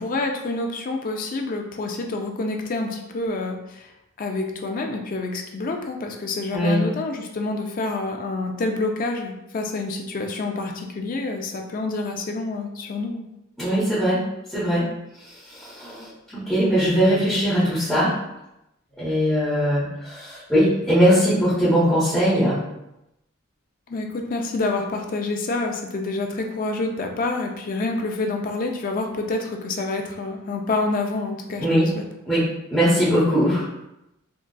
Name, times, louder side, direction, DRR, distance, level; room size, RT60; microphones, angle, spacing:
voice 1, 0.0-3.9 4.2-13.2 23.9-32.0, left 3 dB, 40° left, 3 dB, 0.4 m, -27 dB
voice 2, 13.6-14.2 14.5-14.8 15.6-18.1 19.0-22.6 31.6-31.9 32.3-33.8, equal, ahead, -13 dB, 0.9 m, -20 dB
3.8 x 2.3 x 2.3 m, 0.89 s
head